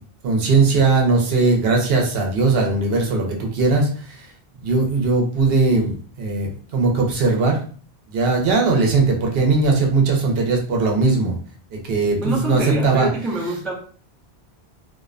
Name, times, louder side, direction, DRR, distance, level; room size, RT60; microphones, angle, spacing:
voice 1, 0.2-4.2 4.6-7.6 8.1-11.4 11.7-13.1, right 3 dB, 70° right, 1 dB, 0.8 m, -19 dB
voice 2, 12.2-13.7, right 1 dB, ahead, -3 dB, 0.4 m, -24 dB
2.5 x 2.1 x 2.4 m, 0.43 s
omnidirectional pair, 1.1 m